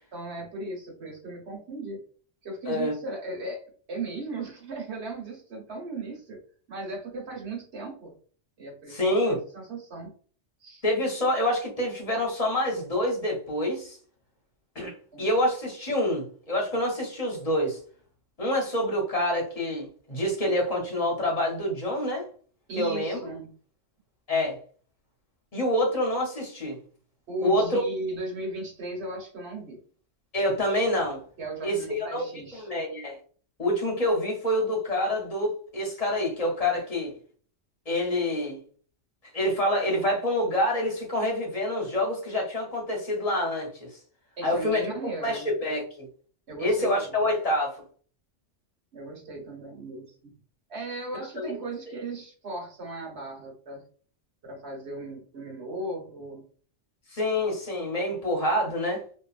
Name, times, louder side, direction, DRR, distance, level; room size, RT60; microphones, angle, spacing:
voice 1, 0.1-2.0 2.4-6.4 6.7-8.1 8.6-10.1 10.6-10.8 15.1-15.4 22.7-23.5 27.3-29.8 31.4-32.7 44.4-45.5 46.5-47.3 48.9-50.3 50.7-53.8 54.4-56.4, right 2 dB, 60° right, 1.3 m, -37 dB
voice 2, 8.9-9.4 10.8-14.0 14.7-17.8 18.4-22.3 22.8-23.2 24.3-24.6 25.5-26.8 27.4-27.8 30.3-31.2 31.6-32.2 32.5-33.2 33.6-37.1 37.9-38.6 39.3-43.9 44.4-44.9 45.2-45.8 46.6-47.8 51.3-51.6 57.1-59.0, left 1 dB, 35° left, 0.8 m, -27 dB
2.8 x 2.4 x 2.4 m
omnidirectional pair, 1.3 m